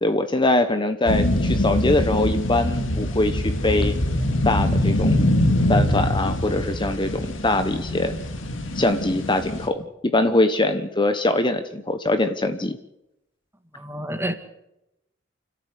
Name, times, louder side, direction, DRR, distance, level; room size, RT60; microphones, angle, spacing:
voice 1, 0.0-4.0 4.4-5.2 5.7-8.1 8.7-12.8, left 2 dB, 25° left, 8 dB, 1.1 m, -22 dB
sound 1, 1.1-9.7, left 1 dB, 75° left, 2.6 m, -23 dB
voice 2, 13.7-14.3, right 1 dB, 10° right, 7 dB, 2.0 m, -28 dB
29.5 x 13.0 x 8.3 m, 0.88 s
head